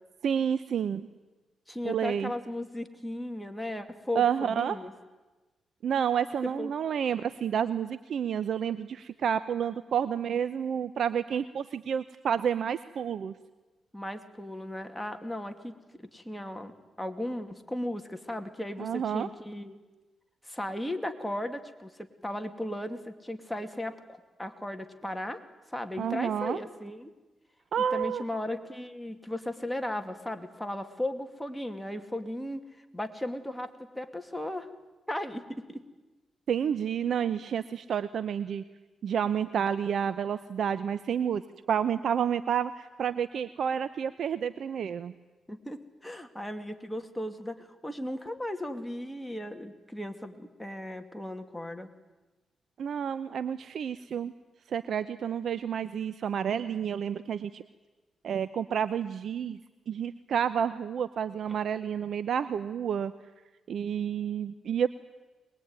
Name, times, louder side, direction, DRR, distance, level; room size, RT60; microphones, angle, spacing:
voice 1, 0.2-1.1 1.8-2.3 4.1-4.8 5.8-13.3 18.8-19.3 26.0-26.6 27.7-28.2 36.5-38.6 39.0-41.4 41.7-45.1 52.8-54.3 54.7-57.6 58.2-59.6 59.9-63.1 63.7-64.9, right 8 dB, 70° right, 13 dB, 0.8 m, -30 dB
voice 2, 1.7-4.9 6.6-6.7 13.9-19.8 20.4-25.4 25.7-27.1 27.9-32.6 32.9-34.7 35.1-35.8 45.5-51.9, left 1 dB, 5° left, 5 dB, 2.6 m, -36 dB
23.0 x 21.0 x 9.6 m, 1.2 s
cardioid pair, 70°, 0 cm